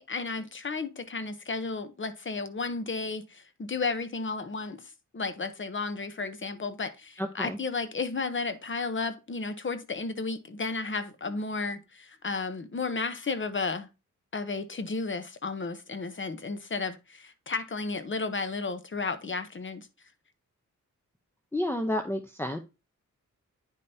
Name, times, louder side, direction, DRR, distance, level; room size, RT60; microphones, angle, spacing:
voice 1, 0.0-13.9 14.3-19.9, left 4 dB, 40° left, 0.9 m, -33 dB
voice 2, 7.2-7.6 21.5-22.6, left 1 dB, 5° left, 0.7 m, -30 dB
9.3 x 5.3 x 2.8 m
cardioid pair, 75°, 32 cm